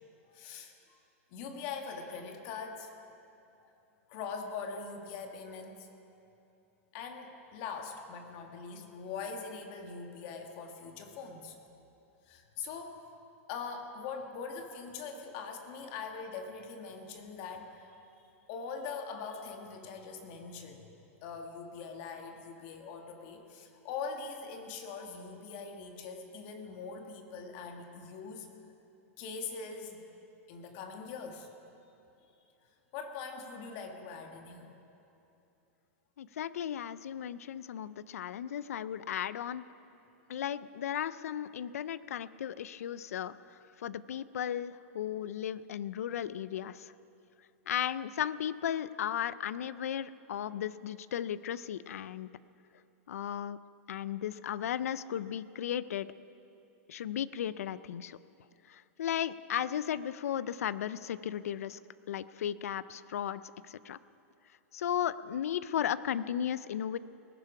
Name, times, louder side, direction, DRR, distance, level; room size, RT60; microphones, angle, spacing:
voice 1, 0.3-1.0 1.3-2.9 4.1-5.9 6.9-11.6 12.3-13.0 13.5-18.0 18.5-20.9 21.2-28.5 29.2-30.0 30.5-31.5 32.2-32.3 32.9-34.8, left 5 dB, 45° left, 4 dB, 1.7 m, -42 dB
voice 2, 36.2-39.6 40.3-46.9 47.7-52.3 53.1-53.6 53.9-56.1 56.9-58.2 58.7-61.8 62.1-64.0 64.7-67.0, left 10 dB, 85° left, 17 dB, 0.5 m, -35 dB
19.5 x 11.5 x 5.0 m, 2.8 s
supercardioid pair, 150°, 8 cm